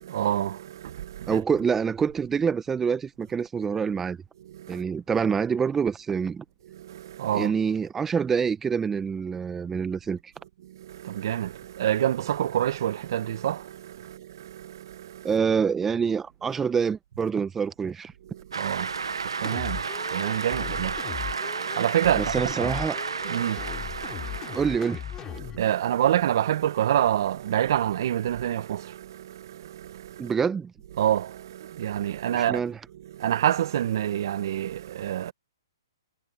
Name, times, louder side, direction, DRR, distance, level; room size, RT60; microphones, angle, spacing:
voice 1, 0.0-1.4 4.4-4.8 6.7-7.5 10.6-15.3 18.3-22.3 22.6-22.8 23.2-24.6 25.4-30.3 31.0-32.6 33.0-35.3, right 11 dB, 55° right, 1.2 m, -28 dB
voice 2, 1.3-4.2 4.7-6.4 7.3-10.2 15.2-18.1 22.2-23.0 24.5-25.0 30.2-30.7 32.3-32.8, right 6 dB, 10° right, 0.8 m, -26 dB
Cheering / Applause, 18.5-25.4, right 5 dB, 90° right, 0.9 m, -33 dB
sound 1, 19.4-25.6, left 10 dB, 20° left, 5.6 m, -38 dB
hypercardioid pair, 140°, 2 cm